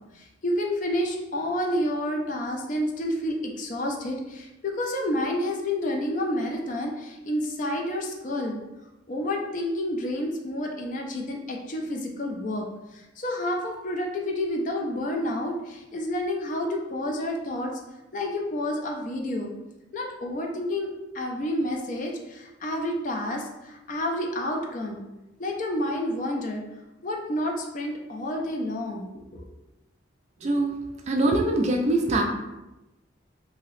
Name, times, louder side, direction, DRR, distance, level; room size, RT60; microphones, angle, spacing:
voice 1, 0.0-8.6 9.1-17.8 18.1-19.5 19.9-25.0 25.4-26.6 27.0-29.5, left 1 dB, 40° left, 1 dB, 0.4 m, -29 dB
voice 2, 30.4-30.8 31.1-32.2, right 2 dB, 35° right, 2 dB, 0.3 m, -23 dB
2.8 x 2.7 x 3.1 m, 1.0 s
head